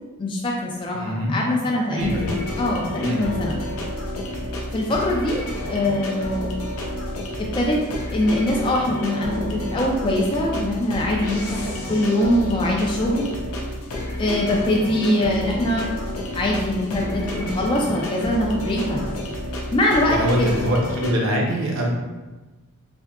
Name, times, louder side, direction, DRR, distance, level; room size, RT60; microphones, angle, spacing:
voice 1, 0.2-2.3 2.6-3.6 4.7-6.7 7.4-7.8 8.1-13.3 14.2-15.8 16.3-19.0 19.7-20.5, left 1 dB, 20° left, -2 dB, 0.3 m, -23 dB
voice 2, 0.9-1.4 1.9-2.3 3.0-3.2 20.1-21.9, equal, 60° right, -1 dB, 0.7 m, -23 dB
sound 1, 2.0-21.1, left 1 dB, 75° left, 0.6 m, -30 dB
3.4 x 2.7 x 2.3 m, 1.2 s
head